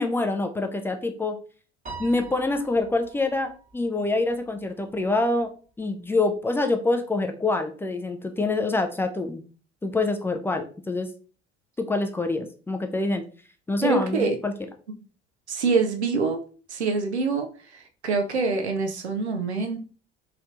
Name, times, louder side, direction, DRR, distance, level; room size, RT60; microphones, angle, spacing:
voice 1, 0.0-1.4 2.0-5.5 5.8-9.4 9.8-11.1 11.8-13.2 13.7-14.5, left 2 dB, 5° left, 5 dB, 0.4 m, -26 dB
Piano, 1.9-4.3, right 4 dB, 25° right, 1.3 m, -43 dB
voice 2, 13.8-14.3 15.5-16.4 16.7-17.5 18.0-19.8, right 4 dB, 85° right, 5 dB, 0.5 m, -25 dB
3.1 x 2.9 x 2.4 m, 0.39 s
figure-of-eight pair, 60°, 33 cm